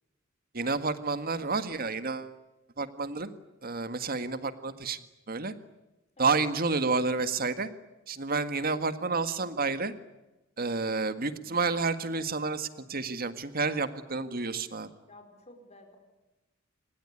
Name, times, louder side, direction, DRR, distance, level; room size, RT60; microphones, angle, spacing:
voice 1, 0.5-2.3 2.8-3.4 3.6-5.0 5.3-5.5 6.2-7.7 8.1-9.9 10.6-14.9, right 4 dB, 50° right, 10 dB, 1.8 m, -30 dB
voice 2, 15.1-16.0, left 2 dB, 35° left, 4 dB, 4.6 m, -52 dB
26.0 x 21.0 x 9.8 m, 1.0 s
head